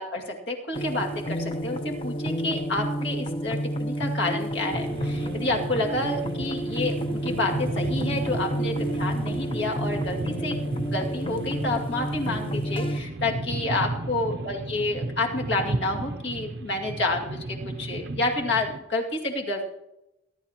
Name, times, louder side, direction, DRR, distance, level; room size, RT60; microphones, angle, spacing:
voice 1, 0.0-10.6 10.8-19.7, left 2 dB, 60° left, 1 dB, 2.4 m, -29 dB
sound 1, 0.7-13.0, right 1 dB, 25° left, 0.8 m, -30 dB
sound 2, 4.7-18.8, right 2 dB, 55° right, 0.7 m, -34 dB
21.0 x 11.5 x 3.0 m, 0.89 s
head